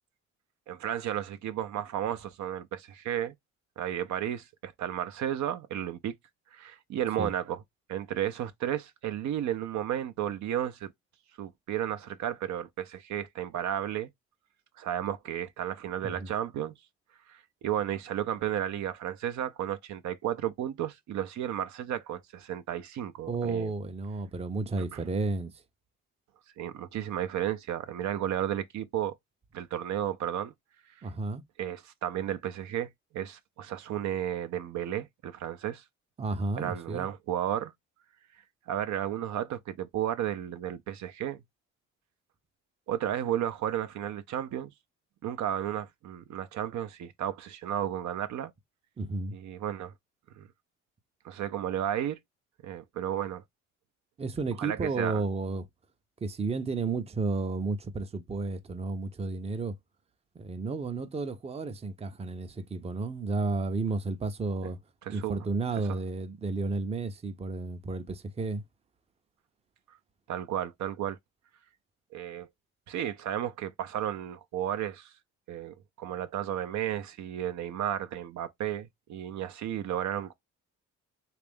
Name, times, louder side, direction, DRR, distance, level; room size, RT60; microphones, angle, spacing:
voice 1, 0.7-3.3 3.8-6.1 6.5-7.6 7.9-10.9 11.4-14.1 14.8-16.7 17.3-23.7 24.9-25.0 26.6-29.1 29.5-30.5 31.6-32.9 33.1-35.8 36.6-37.7 38.7-41.4 42.9-44.7 45.2-48.5 49.3-49.9 50.4-50.5 51.2-52.2 52.6-53.4 54.6-55.2 65.0-65.4 65.9-66.0 69.9-70.0 70.3-71.2 72.1-72.5 72.9-75.1 75.5-80.3, right 11 dB, 70° right, 0.6 m, -33 dB
voice 2, 23.3-25.5 31.0-31.4 36.2-37.1 49.0-49.3 54.2-55.7 56.2-59.7 60.4-64.8 65.1-68.6, right 3 dB, 20° right, 0.5 m, -32 dB
3.4 x 2.5 x 3.4 m
cardioid pair, 90°, 30 cm